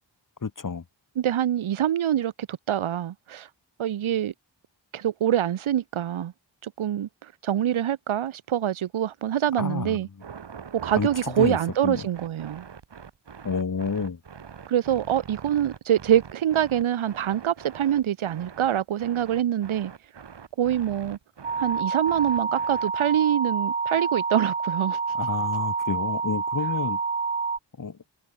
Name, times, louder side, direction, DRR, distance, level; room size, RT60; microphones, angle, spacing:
voice 1, 0.4-0.8 9.6-10.0 11.0-11.1 11.4-11.6 11.8-12.1 13.4-14.2 25.2-27.0 27.8-28.0, left 5 dB, 40° left, 1.2 m, -29 dB
voice 2, 1.2-3.5 3.8-4.3 4.9-6.3 6.6-7.1 7.4-10.1 10.7-12.7 14.7-19.9 20.6-21.2 21.6-25.0, right 10 dB, 85° right, 0.8 m, -25 dB
sound 1, 10.2-23.1, right 6 dB, 60° right, 1.3 m, -43 dB
sound 2, 21.4-27.6, right 5 dB, 20° right, 0.3 m, -28 dB
cardioid pair, 40°, 47 cm